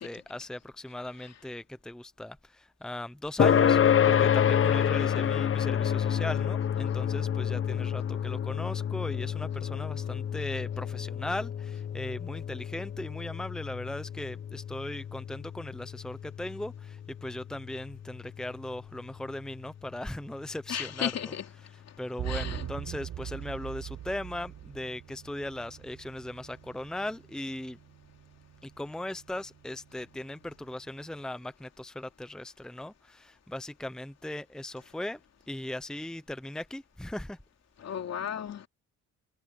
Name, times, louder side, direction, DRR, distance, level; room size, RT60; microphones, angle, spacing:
voice 1, 0.0-21.1 22.0-27.8 28.6-35.2 35.5-37.4, left 1 dB, ahead, 0.9 m, -38 dB
sound 1, 3.4-18.3, left 8 dB, 45° left, 1.2 m, -28 dB
voice 2, 20.7-22.7 37.8-38.7, left 9 dB, 60° left, 2.9 m, -36 dB
sound 2, 22.2-31.2, right 11 dB, 75° right, 6.0 m, -43 dB
cardioid pair, 90°, 30 cm